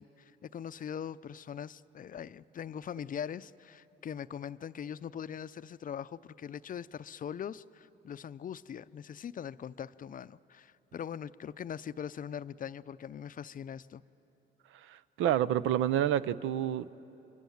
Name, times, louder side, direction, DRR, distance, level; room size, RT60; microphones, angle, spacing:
voice 1, 0.0-14.0, left 8 dB, 45° left, 0.5 m, -41 dB
voice 2, 14.7-17.0, right 11 dB, 85° right, 0.6 m, -29 dB
29.0 x 23.5 x 7.2 m
cardioid pair, 90°, 20 cm